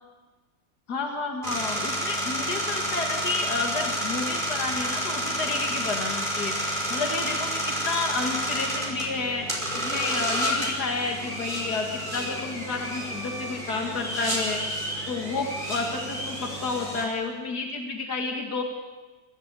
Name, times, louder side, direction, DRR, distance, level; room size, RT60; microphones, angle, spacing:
voice 1, 0.9-6.6 6.9-9.5 9.7-14.6 15.1-18.6, left 3 dB, 85° left, 2 dB, 2.5 m, -30 dB
sound 1, 1.4-17.1, equal, 30° right, 5.2 m, -30 dB
29.5 x 14.0 x 8.3 m, 1.2 s
omnidirectional pair, 1.7 m